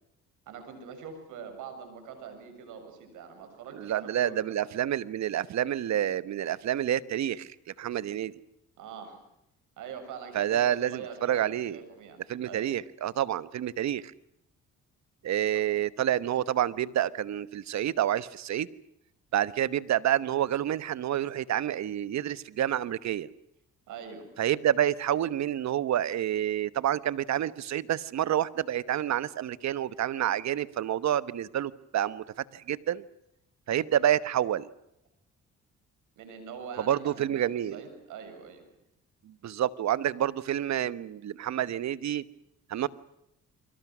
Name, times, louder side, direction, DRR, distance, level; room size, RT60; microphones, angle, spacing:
voice 1, 0.5-4.7 8.8-9.2 9.8-12.2 12.4-12.7 15.5-15.6 23.9-24.3 36.2-38.6, right 6 dB, 90° right, 7 dB, 6.9 m, -44 dB
voice 2, 3.7-8.3 10.3-11.8 12.3-14.1 15.2-18.7 19.3-23.3 24.4-32.2 32.5-33.0 33.7-34.7 36.8-37.8 39.2-42.2 42.7-42.9, right 11 dB, 65° right, 16 dB, 1.2 m, -28 dB
29.5 x 24.0 x 6.2 m, 0.81 s
cardioid pair, 90°, 30 cm